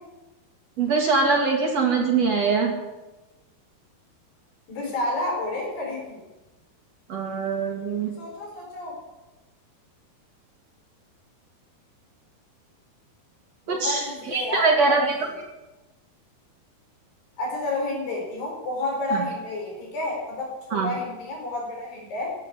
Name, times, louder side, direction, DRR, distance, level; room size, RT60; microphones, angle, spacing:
voice 1, 0.8-2.7 7.1-8.1 13.7-15.1 19.1-19.2 20.7-20.9, right 4 dB, 45° right, 0 dB, 2.9 m, -23 dB
voice 2, 4.7-6.2 8.2-8.9 13.6-15.0 17.4-22.3, left 2 dB, 65° left, -1 dB, 6.8 m, -30 dB
16.5 x 10.5 x 8.4 m, 1.1 s
omnidirectional pair, 4.4 m